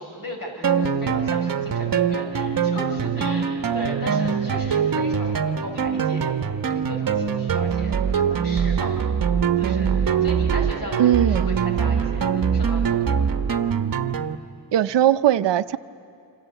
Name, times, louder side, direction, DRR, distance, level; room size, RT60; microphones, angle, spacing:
voice 1, 0.0-6.3 6.7-9.0 9.6-13.3, left 1 dB, 50° left, 1 dB, 6.5 m, -36 dB
sound 1, 0.6-14.4, right 7 dB, 50° right, 1.0 m, -23 dB
voice 2, 11.0-11.5 14.7-15.8, right 11 dB, 75° right, 13 dB, 0.6 m, -19 dB
26.5 x 26.0 x 8.2 m, 2.5 s
wide cardioid pair, 100°, 43 cm